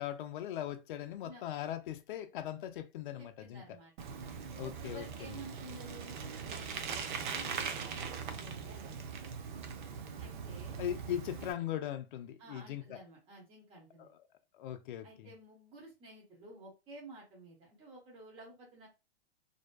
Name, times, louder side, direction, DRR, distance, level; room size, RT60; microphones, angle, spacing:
voice 1, 0.0-3.8 4.6-5.4 10.8-13.0 14.6-15.3, left 11 dB, 55° left, 0.5 m, -39 dB
voice 2, 3.2-4.1 4.6-6.2 6.4-9.1 10.2-10.8 12.4-14.1 15.0-18.9, right 2 dB, 20° right, 1.0 m, -52 dB
Bicycle, 4.0-11.5, right 6 dB, 50° right, 0.5 m, -41 dB
2.7 x 2.1 x 2.2 m
hypercardioid pair, 140°, 31 cm